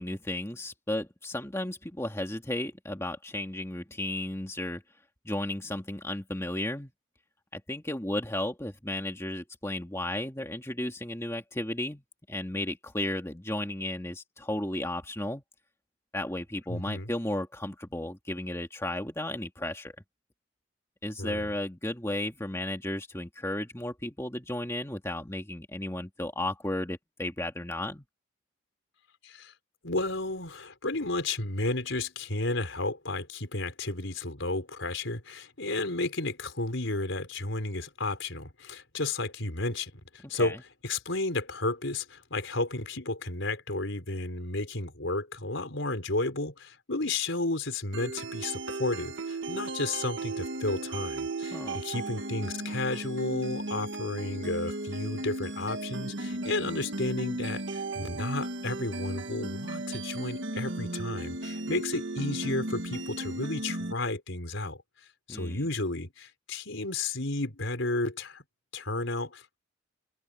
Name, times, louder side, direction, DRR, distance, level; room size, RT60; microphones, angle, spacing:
voice 1, 0.0-4.8 5.3-6.9 7.5-12.0 12.3-15.4 16.1-19.9 21.0-28.0 40.4-40.6 51.5-51.8 65.3-65.6, left 1 dB, 15° left, 2.0 m, -34 dB
voice 2, 16.7-17.1 21.2-21.5 29.2-29.5 29.8-40.6 40.8-64.8 65.3-68.4 68.7-69.6, left 2 dB, 70° left, 4.7 m, -32 dB
sound 1, 47.9-63.9, right 2 dB, 65° right, 1.6 m, -35 dB
open air
head